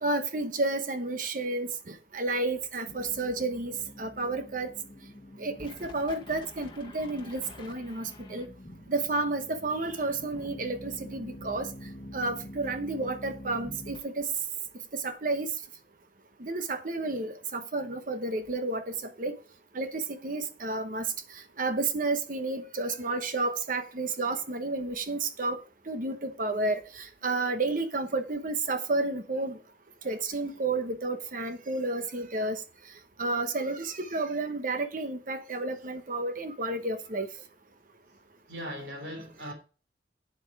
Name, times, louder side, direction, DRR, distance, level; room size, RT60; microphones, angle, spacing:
voice 1, 0.0-4.7 5.4-8.5 8.9-11.7 12.1-14.3 14.9-15.5 16.4-19.3 19.7-25.6 25.9-29.6 30.0-32.6 33.2-37.3, right 2 dB, 50° right, 1.0 m, -31 dB
sound 1, 2.9-14.0, left 1 dB, 30° left, 1.7 m, -46 dB
voice 2, 38.5-39.5, equal, 80° right, 3.3 m, -39 dB
8.9 x 7.9 x 4.8 m
head